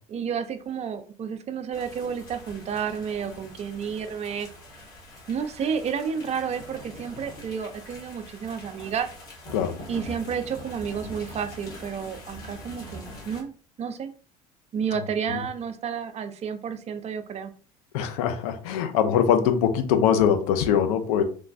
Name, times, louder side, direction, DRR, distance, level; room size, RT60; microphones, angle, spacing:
voice 1, 0.1-4.5 5.3-9.1 9.9-13.5 13.8-14.1 14.7-17.5, right 7 dB, 35° right, 8 dB, 0.4 m, -31 dB
sound 1, 1.7-13.4, left 1 dB, 50° left, 1.4 m, -43 dB
voice 2, 17.9-21.2, left 8 dB, 70° left, 7 dB, 0.5 m, -22 dB
3.2 x 2.2 x 2.5 m, 0.41 s
hypercardioid pair, 65°, 20 cm